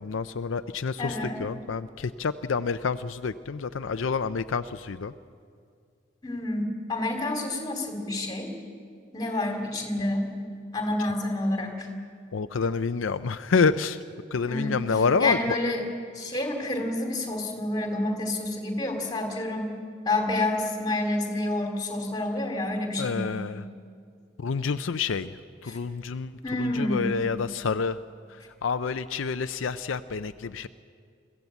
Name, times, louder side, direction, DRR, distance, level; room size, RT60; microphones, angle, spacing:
voice 1, 0.0-5.1 12.3-14.0 14.3-15.4 23.0-23.6 24.4-25.3 25.6-26.3 26.6-28.0 28.6-30.7, left 5 dB, 80° left, 11 dB, 0.5 m, -28 dB
voice 2, 1.0-1.4 6.2-8.5 9.1-10.3 10.7-11.9 14.4-15.8 16.1-19.7 20.0-23.4 25.7-25.8 26.4-27.1, left 2 dB, 20° left, 3 dB, 2.8 m, -29 dB
22.5 x 15.0 x 8.1 m, 2.2 s
head